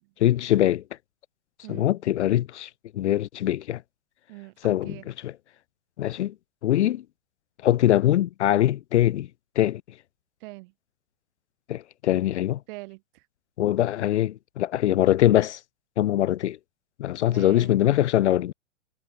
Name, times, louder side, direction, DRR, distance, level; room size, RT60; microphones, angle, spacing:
voice 1, 0.2-0.8 1.7-3.8 4.6-5.0 5.2-5.3 6.0-6.3 6.6-7.0 7.6-9.3 9.6-9.8 11.7-12.6 13.6-15.6 16.0-16.6 17.0-18.5, left 13 dB, 65° left, 0.5 m, -22 dB
voice 2, 1.6-2.0 4.3-5.0 10.4-10.7 12.7-13.3 17.2-17.7, right 24 dB, 45° right, 6.2 m, -43 dB
figure-of-eight pair, 110°, 37 cm